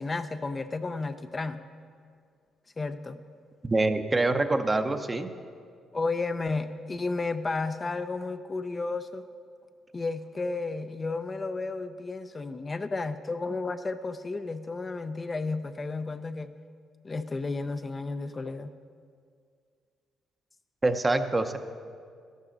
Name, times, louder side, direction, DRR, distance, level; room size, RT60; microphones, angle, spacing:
voice 1, 0.0-1.6 2.8-3.2 5.9-9.2 9.9-16.5 17.0-18.7, left 3 dB, 30° left, 9 dB, 0.4 m, -32 dB
voice 2, 3.6-5.3 20.8-21.6, right 2 dB, 20° right, 8 dB, 0.7 m, -25 dB
12.0 x 12.0 x 3.9 m, 2.2 s
cardioid pair, 90°, 0 cm